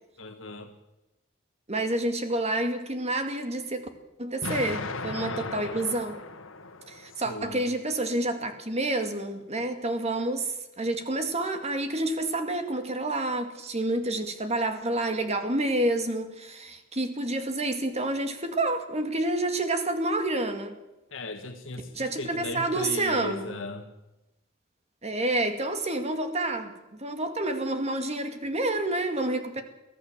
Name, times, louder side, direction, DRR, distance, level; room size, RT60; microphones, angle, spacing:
voice 1, 0.2-0.7 5.1-5.8 7.1-7.7 21.1-23.9, left 2 dB, 70° left, 1.7 m, -38 dB
voice 2, 1.7-3.9 4.2-6.2 6.9-20.7 21.9-23.6 25.0-26.7 27.0-29.6, right 2 dB, 35° right, 2.2 m, -29 dB
Explosion, 4.4-7.4, left 3 dB, 85° left, 1.7 m, -36 dB
23.5 x 15.0 x 7.4 m
head